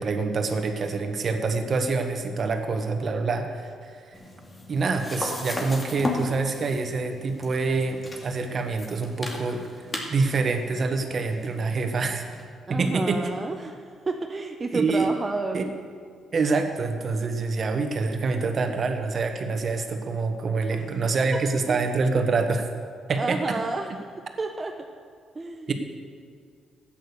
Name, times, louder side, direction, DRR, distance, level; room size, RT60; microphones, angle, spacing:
voice 1, 0.0-4.1 4.7-12.3 12.7-13.2 14.7-15.1 15.5-15.7 16.3-22.6 23.1-23.6 25.7-25.8, right 4 dB, 45° right, 5 dB, 1.4 m, -26 dB
sound 1, 4.1-12.4, left 2 dB, 30° left, 2.4 m, -36 dB
voice 2, 12.7-15.6 20.7-20.8 21.7-21.9 23.2-24.7 25.3-25.7, right 3 dB, 25° right, 3 dB, 0.8 m, -31 dB
12.5 x 9.1 x 6.8 m, 2.1 s
cardioid pair, 90°, 0 cm